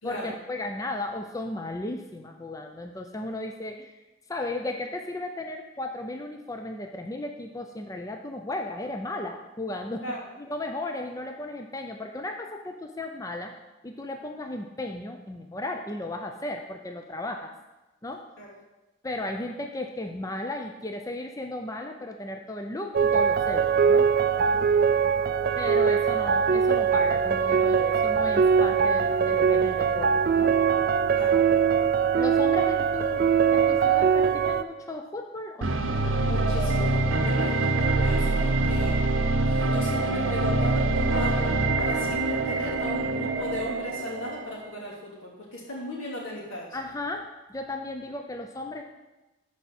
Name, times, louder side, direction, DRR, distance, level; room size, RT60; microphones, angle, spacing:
voice 1, 0.0-4.0 4.3-10.1 10.4-13.5 13.8-17.5 18.0-18.3 19.0-24.1 25.6-30.5 32.2-35.8 46.7-48.8, left 2 dB, 15° left, 4 dB, 0.4 m, -35 dB
sound 1, 22.9-34.6, right 6 dB, 45° right, 0.3 m, -22 dB
voice 2, 31.1-31.4 36.2-39.1 39.4-46.8, left 1 dB, 90° left, -5 dB, 3.1 m, -37 dB
sound 2, 35.6-44.7, right 2 dB, 80° right, 0.7 m, -25 dB
12.5 x 4.8 x 4.2 m, 1.1 s
head